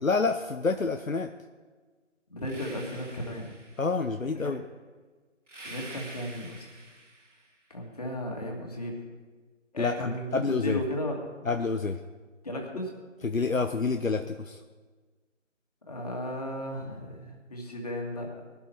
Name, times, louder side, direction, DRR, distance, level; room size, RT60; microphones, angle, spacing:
voice 1, 0.0-1.3 3.8-4.6 9.8-10.8 11.4-12.0 13.2-14.6, left 4 dB, 80° left, 6 dB, 1.0 m, -28 dB
voice 2, 2.3-3.5 4.3-4.6 5.6-6.7 7.7-9.0 9.7-11.2 12.4-12.9 15.9-18.4, left 1 dB, 30° left, 0 dB, 2.4 m, -35 dB
sound 1, 2.4-4.1 5.5-7.5, right 2 dB, 65° right, 2.8 m, -47 dB
21.0 x 12.0 x 4.7 m, 1.4 s
figure-of-eight pair, 165°, 39 cm